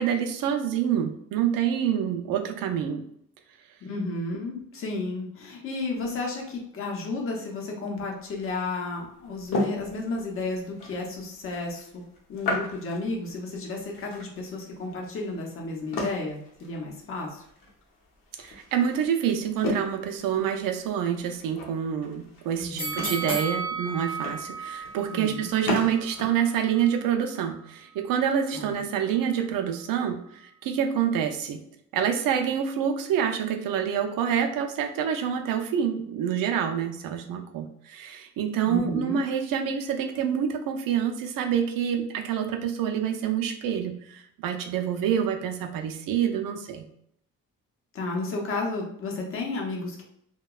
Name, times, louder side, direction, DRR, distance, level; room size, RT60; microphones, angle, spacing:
voice 1, 0.0-3.0 18.4-31.6 31.9-46.9, right 8 dB, 85° right, 6 dB, 0.5 m, -27 dB
voice 2, 3.8-12.0 12.3-17.4 22.6-23.0 25.1-25.5 28.5-28.8 38.6-39.2 47.9-50.0, left 3 dB, 40° left, 0 dB, 0.6 m, -32 dB
sound 1, 8.2-26.3, left 2 dB, 85° left, 0.7 m, -36 dB
sound 2, 22.8-25.9 26.3-26.4, right 4 dB, 5° right, 0.5 m, -33 dB
2.8 x 2.2 x 2.3 m, 0.70 s
cardioid pair, 170°, 32 cm